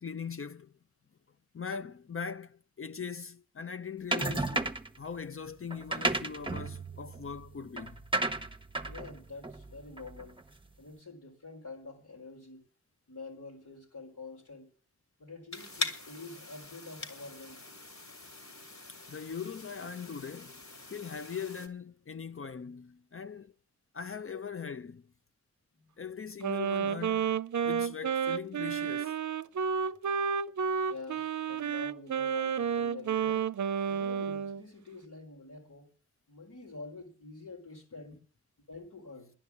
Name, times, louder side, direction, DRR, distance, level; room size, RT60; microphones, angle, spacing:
voice 1, 0.0-0.8 1.5-8.0 19.1-20.6 20.9-23.5 23.9-25.1 26.0-29.1, left 6 dB, 45° left, 0.6 m, -41 dB
sound 1, 4.1-5.0 5.7-10.4, right 2 dB, 15° right, 1.1 m, -34 dB
voice 2, 8.8-10.4 10.8-12.7 13.1-14.7 15.2-17.7 25.7-25.9 30.9-33.4 33.9-35.9 36.3-38.2 38.7-39.3, left 3 dB, 85° left, 4.5 m, -47 dB
sound 2, 15.5-21.7, left 3 dB, 60° left, 3.0 m, -42 dB
Wind instrument woodwind instrument, 26.4-34.6, right 7 dB, 70° right, 0.6 m, -31 dB
10.5 x 9.7 x 8.5 m
cardioid pair, 45°, 30 cm